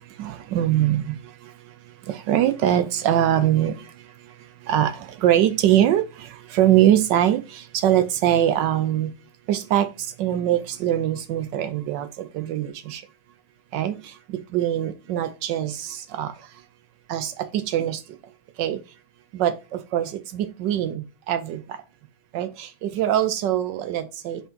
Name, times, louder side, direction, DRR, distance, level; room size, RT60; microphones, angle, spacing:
voice 1, 0.2-1.1 2.3-3.7 4.7-4.9 5.2-6.0 6.5-7.4 7.8-9.1 9.5-9.9 10.2-12.1 12.3-13.0 13.7-13.9 14.5-15.7 16.2-16.3 17.1-17.3 17.7-18.0 18.6-18.8 19.4-19.5 19.9-20.1 20.3-21.6 22.3-22.5 22.8-24.4, right 11 dB, 75° right, 1.1 m, -21 dB
5.1 x 3.7 x 5.1 m
omnidirectional pair, 2.4 m